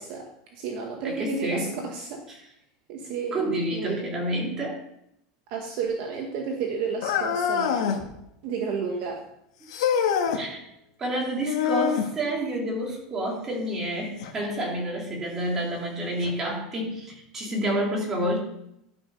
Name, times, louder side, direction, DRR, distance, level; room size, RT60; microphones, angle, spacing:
voice 1, 0.0-2.2 2.9-3.4 3.7-4.1 5.5-8.0 8.4-9.2, right 5 dB, 40° right, 2 dB, 1.4 m, -32 dB
voice 2, 1.0-1.7 2.3-2.4 3.3-4.8 9.6-10.0 10.3-10.6 11.0-18.4, right 1 dB, 15° right, -2 dB, 2.6 m, -29 dB
sound 1, 7.0-8.1 9.7-10.4 11.4-12.1 14.2-14.3 15.2-15.3 16.2-16.3, left 7 dB, 85° left, 1.8 m, -25 dB
12.0 x 5.6 x 5.4 m, 0.79 s
supercardioid pair, 180°, 3 cm